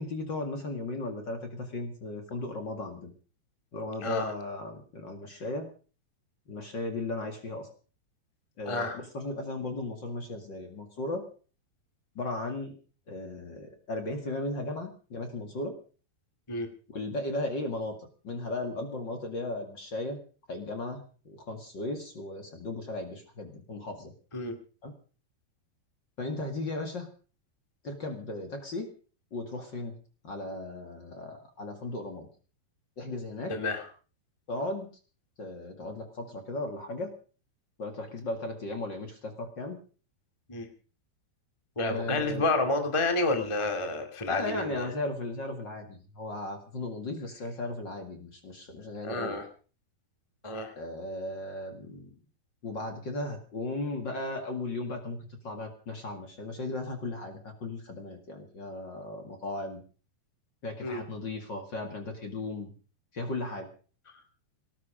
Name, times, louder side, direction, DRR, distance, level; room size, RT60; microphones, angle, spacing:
voice 1, 0.0-3.1 3.7-5.7 6.5-7.7 8.6-11.2 12.1-12.7 13.1-15.7 16.9-20.2 20.5-24.1 24.8-24.9 26.2-27.1 27.8-28.9 29.3-30.0 30.2-32.3 33.0-33.6 34.5-34.9 35.4-37.1 37.8-39.8 41.8-42.5 44.3-49.4 50.7-52.2 52.6-59.8 60.6-62.7 63.1-63.7, left 2 dB, 40° left, 5 dB, 1.8 m, -36 dB
voice 2, 4.0-4.3 8.6-9.0 16.5-16.7 24.3-24.5 33.5-33.9 40.5-40.7 41.7-44.9 49.0-49.4 50.4-50.7 60.8-61.0, left 2 dB, 25° left, 6 dB, 0.7 m, -29 dB
18.5 x 12.0 x 5.1 m, 0.39 s
omnidirectional pair, 4.9 m